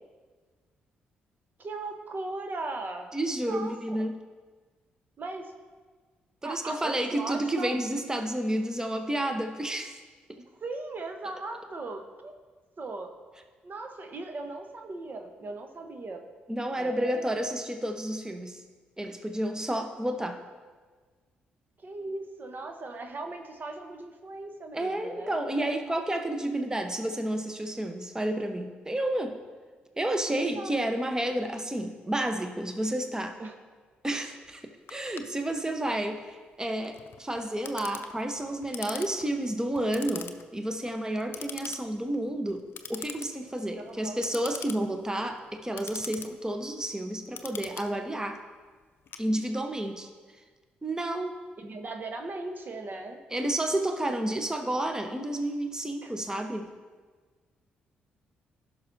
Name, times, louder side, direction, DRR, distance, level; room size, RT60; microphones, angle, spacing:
voice 1, 1.6-3.1 3.5-4.1 5.2-5.5 6.4-7.7 10.6-12.3 12.8-13.1 13.6-16.2 16.7-17.6 21.8-25.8 30.3-30.8 33.4-33.5 43.8-44.3 51.6-53.2 54.2-54.3 56.0-56.1, right 2 dB, 45° right, 5 dB, 1.0 m, -38 dB
voice 2, 3.1-4.1 6.4-10.0 10.3-10.4 16.5-18.6 19.0-20.4 24.7-29.4 30.0-33.4 34.0-34.6 34.9-42.6 42.9-48.4 49.2-50.1 50.8-51.4 53.3-56.7, right 1 dB, 15° right, 5 dB, 1.0 m, -30 dB
Clock, 34.9-49.8, left 7 dB, 55° left, 0.6 m, -44 dB
16.0 x 5.8 x 2.7 m, 1.4 s
hypercardioid pair, 45°, 5 cm